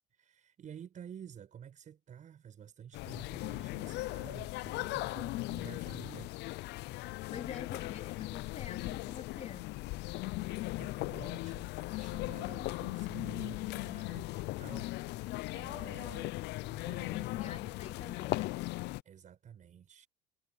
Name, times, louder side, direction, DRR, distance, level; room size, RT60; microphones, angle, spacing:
voice 1, 0.1-6.3 10.5-16.4 16.7-17.6 17.8-17.9 19.0-20.1, right 8 dB, 40° right, 5.9 m, -51 dB
sound 1, 2.9-19.0, left 19 dB, 60° left, 0.5 m, -38 dB
voice 2, 7.3-9.7 17.0-18.6, left 8 dB, 35° left, 3.5 m, -46 dB
cardioid pair, 120°, 20 cm